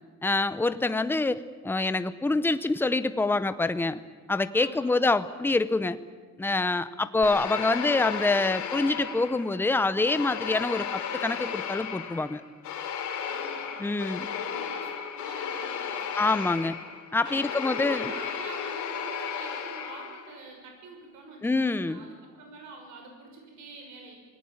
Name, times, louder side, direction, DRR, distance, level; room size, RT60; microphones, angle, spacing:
voice 1, 0.2-4.0 4.3-6.0 6.4-12.4 13.8-14.3 16.2-16.8 17.1-18.1 21.4-22.0, left 3 dB, 5° left, 13 dB, 0.7 m, -26 dB
voice 2, 4.5-5.0 13.2-16.3 17.2-24.2, right 3 dB, 75° right, 2 dB, 6.2 m, -46 dB
sound 1, 7.2-9.6 10.1-20.4, left 7 dB, 70° left, 3.1 m, -34 dB
26.5 x 19.0 x 8.7 m, 1.4 s
cardioid pair, 170°, 30 cm